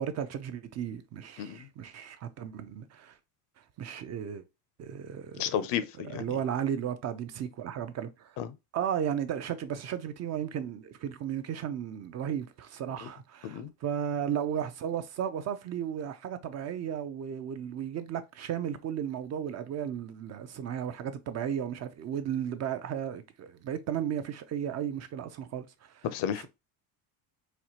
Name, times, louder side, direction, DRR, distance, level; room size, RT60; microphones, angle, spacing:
voice 1, 0.0-3.2 3.8-4.4 4.8-5.4 6.1-8.4 8.7-26.1 26.4-26.5, right 9 dB, 40° right, 0.4 m, -34 dB
voice 2, 5.4-6.4 8.4-8.5 13.0-13.1 13.4-13.7 26.0-26.5, left 9 dB, 70° left, 0.6 m, -33 dB
4.2 x 2.4 x 2.9 m
cardioid pair, 125°, 44 cm